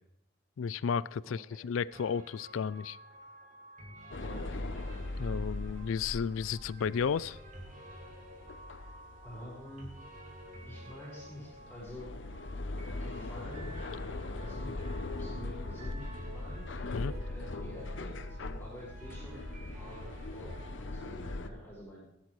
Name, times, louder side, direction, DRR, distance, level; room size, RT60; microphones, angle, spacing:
voice 1, 0.6-3.0 5.2-7.4 16.9-17.1, left 6 dB, 85° left, 0.4 m, -33 dB
voice 2, 1.2-1.6 4.2-4.5 9.2-9.9 10.6-12.1 13.0-13.7 14.0-14.7 15.0-16.7 17.3-19.4 19.7-22.0, equal, 10° left, 4.5 m, -48 dB
sound 1, 1.9-21.3, right 1 dB, 40° right, 2.1 m, -51 dB
sound 2, 4.1-21.5, left 2 dB, 70° left, 0.8 m, -40 dB
15.0 x 12.0 x 3.2 m
head